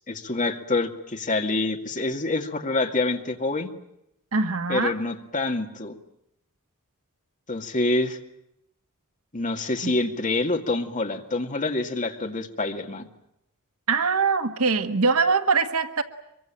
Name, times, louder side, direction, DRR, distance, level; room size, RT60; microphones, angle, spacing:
voice 1, 0.1-3.7 4.7-6.0 7.5-8.2 9.3-13.1, left 2 dB, 35° left, 4 dB, 2.2 m, -26 dB
voice 2, 4.3-4.9 9.8-9.9 13.9-16.0, right 4 dB, 75° right, 8 dB, 1.5 m, -22 dB
24.5 x 23.5 x 9.0 m, 0.81 s
head